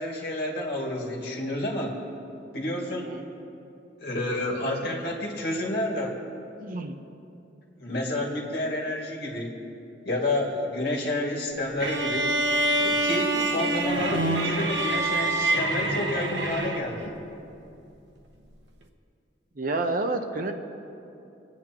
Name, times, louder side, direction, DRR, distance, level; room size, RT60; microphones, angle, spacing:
voice 1, 0.0-1.9 2.5-3.1 4.0-6.1 7.8-9.5 10.1-12.3 12.8-17.1, left 1 dB, 60° left, -2 dB, 2.2 m, -30 dB
voice 2, 6.6-6.9 13.3-13.7 19.6-20.5, right 2 dB, 50° right, 6 dB, 0.7 m, -30 dB
sound 1, 11.8-17.1, right 1 dB, 80° right, 1.0 m, -26 dB
26.5 x 9.1 x 3.0 m, 2.7 s
head